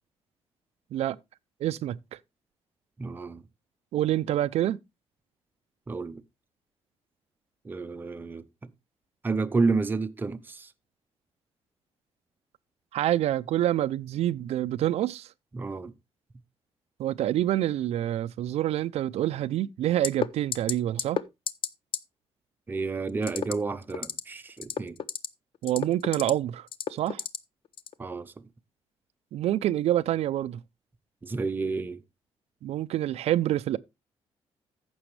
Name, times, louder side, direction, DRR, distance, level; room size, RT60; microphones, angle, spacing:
voice 1, 1.6-2.0 3.9-4.8 12.9-15.3 17.0-21.2 25.6-27.2 29.3-30.6 32.6-33.8, right 13 dB, 75° right, 0.5 m, -27 dB
voice 2, 3.0-3.4 5.9-6.2 7.6-8.4 9.2-10.7 15.5-15.9 22.7-25.0 28.0-28.3 31.2-32.0, right 4 dB, 20° right, 0.7 m, -30 dB
sound 1, 20.0-20.3 20.5-20.7 21.0-21.2 21.5-21.7 21.9-22.0 23.2-23.5 23.9-24.2 24.6-25.3 25.6-26.3 26.7-27.4 27.8-27.9, left 8 dB, 55° left, 0.7 m, -30 dB
14.5 x 6.2 x 3.2 m
cardioid pair, 160°, 11 cm